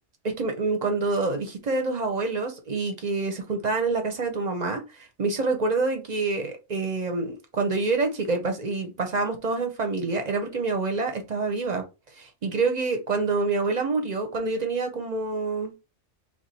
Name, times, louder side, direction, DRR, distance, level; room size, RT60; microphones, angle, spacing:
voice 1, 0.2-4.8 5.2-11.8 12.2-15.7, right 3 dB, 40° right, 0.7 m, -27 dB
3.0 x 2.4 x 4.0 m
omnidirectional pair, 1.2 m